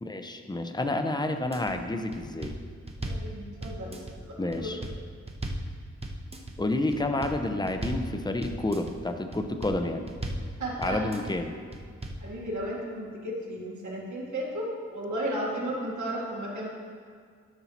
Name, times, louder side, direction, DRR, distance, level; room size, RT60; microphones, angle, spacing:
voice 1, 0.0-2.5 4.4-4.8 6.6-10.0 10.8-11.5, left 2 dB, 15° left, 6 dB, 0.6 m, -29 dB
sound 1, 1.3-1.7 2.1-3.3 3.6-4.2 4.5-5.7 6.0-6.6 6.9-7.4 7.7-8.1 8.4-8.9 9.3-9.8 10.1-10.5 10.8-11.3 11.7-12.2, right 1 dB, 20° right, 0.8 m, -36 dB
voice 2, 3.0-4.7 10.6-11.0 12.2-16.7, right 1 dB, 80° right, -5 dB, 2.0 m, -34 dB
12.5 x 5.5 x 3.0 m, 2.1 s
cardioid pair, 70°, 29 cm